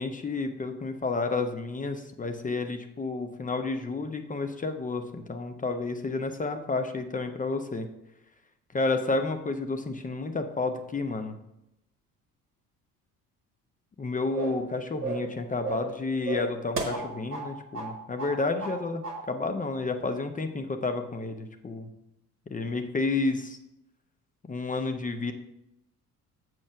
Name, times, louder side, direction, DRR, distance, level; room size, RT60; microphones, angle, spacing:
voice 1, 0.0-7.9 8.7-11.4 14.0-21.9 22.5-23.6 24.5-25.3, left 3 dB, 20° left, 7 dB, 0.7 m, -30 dB
sound 1, 14.3-14.7 15.0-15.3 15.6-15.9 16.3-17.5 17.7-17.9 18.2-18.8 19.0-19.2, right 4 dB, 90° right, 0.9 m, -33 dB
7.4 x 4.7 x 5.7 m, 0.86 s
figure-of-eight pair, 50°, 46 cm